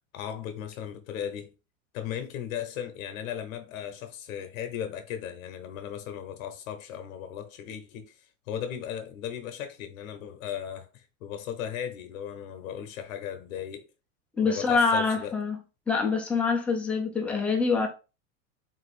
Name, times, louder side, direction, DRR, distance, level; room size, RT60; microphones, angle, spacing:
voice 1, 0.1-1.5 1.9-13.9 14.4-15.3, left 9 dB, 70° left, 0.9 m, -37 dB
voice 2, 14.4-15.6 15.9-17.9, left 4 dB, 5° left, 0.4 m, -25 dB
3.7 x 2.7 x 4.1 m
supercardioid pair, 150°, 41 cm